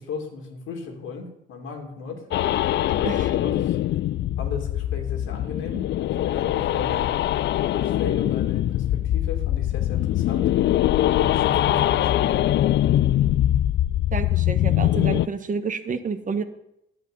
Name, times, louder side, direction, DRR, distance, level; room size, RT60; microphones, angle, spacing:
voice 1, 0.0-2.2 2.7-3.8 4.4-7.1 7.6-10.5 11.1-12.7, left 4 dB, 85° left, 2 dB, 2.5 m, -36 dB
sound 1, 2.3-15.3, left 13 dB, 65° left, 0.4 m, -22 dB
voice 2, 3.0-3.3 14.1-16.4, right 5 dB, 40° right, 9 dB, 1.2 m, -29 dB
11.0 x 7.8 x 6.9 m, 0.82 s
cardioid pair, 90°, 20 cm